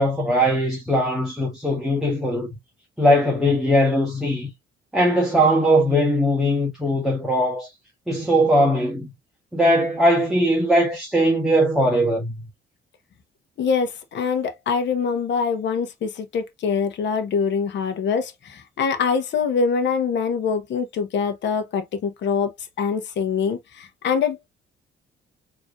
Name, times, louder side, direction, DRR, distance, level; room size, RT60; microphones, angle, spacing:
voice 1, 0.0-2.6 3.0-4.5 4.9-7.7 8.1-9.1 9.5-12.3, equal, 5° right, 1.4 m, -20 dB
voice 2, 13.6-22.5 22.8-24.5, left 6 dB, 65° left, 1.1 m, -24 dB
4.7 x 3.0 x 2.6 m
cardioid pair, 90°, 20 cm